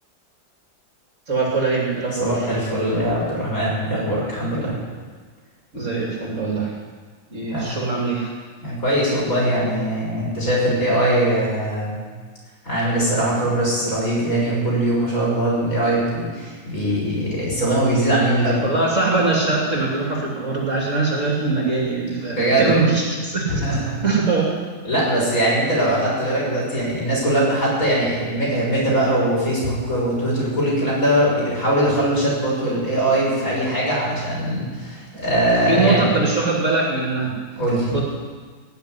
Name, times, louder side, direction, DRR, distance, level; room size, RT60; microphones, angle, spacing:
voice 1, 1.3-2.5 5.7-6.7 7.3-8.3 18.6-23.5 24.0-24.5 35.6-37.4 37.9-38.0, right 3 dB, 40° right, -3 dB, 3.1 m, -22 dB
voice 2, 2.2-4.8 7.5-7.8 8.6-12.0 12.6-18.7 22.3-22.9 23.5-24.0 24.8-36.0 37.6-37.9, right 1 dB, 45° left, -6 dB, 6.7 m, -21 dB
18.0 x 7.1 x 9.9 m, 1.5 s
omnidirectional pair, 2.0 m